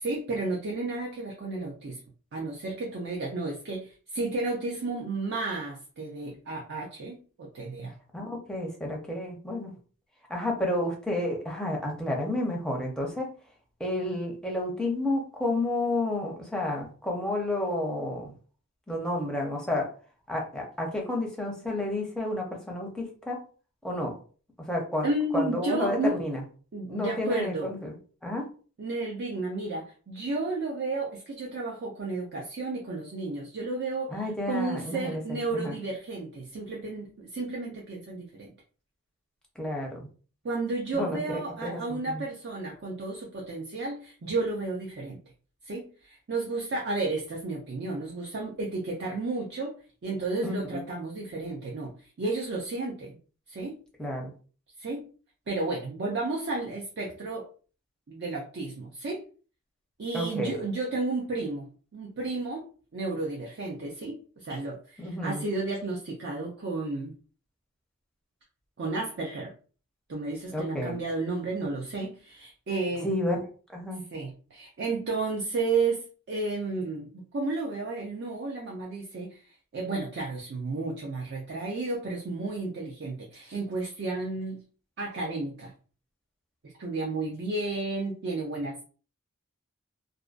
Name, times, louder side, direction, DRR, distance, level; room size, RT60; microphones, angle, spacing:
voice 1, 0.0-2.0 2.3-7.9 25.0-26.2 26.7-27.7 28.8-34.2 34.5-38.5 40.4-45.2 45.6-49.8 50.0-53.2 53.5-53.8 54.8-55.0 55.5-57.5 58.1-59.2 60.0-62.7 62.9-67.1 68.8-69.5 70.1-73.1 74.1-79.4 79.7-84.6 85.0-85.7 86.6-88.8, right 3 dB, 50° right, -1 dB, 0.4 m, -32 dB
voice 2, 8.1-9.7 10.3-13.3 13.8-18.3 18.9-19.9 20.3-23.4 23.8-24.1 24.6-26.4 26.9-27.9 28.2-28.5 34.1-35.7 39.6-40.1 40.9-41.2 41.6-42.2 50.4-50.8 54.0-54.3 60.1-60.6 65.0-65.4 70.5-70.9 73.0-73.4 73.7-74.0, left 1 dB, 5° left, -1 dB, 0.5 m, -31 dB
2.5 x 2.2 x 2.4 m, 0.39 s
head